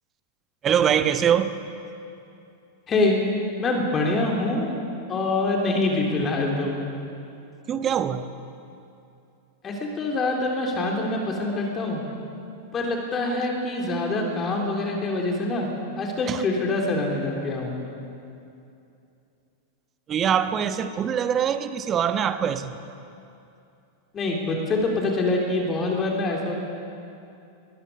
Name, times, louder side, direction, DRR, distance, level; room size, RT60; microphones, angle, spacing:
voice 1, 0.6-1.6 7.7-8.3 16.3-16.4 20.1-22.7, right 8 dB, 25° right, 10 dB, 1.2 m, -23 dB
voice 2, 3.6-4.7 5.1-6.8 9.6-12.0 12.7-15.7 16.0-17.9 24.1-26.6, left 2 dB, 25° left, 0 dB, 3.5 m, -25 dB
22.5 x 19.5 x 6.9 m, 2.7 s
figure-of-eight pair, 90°, 0 cm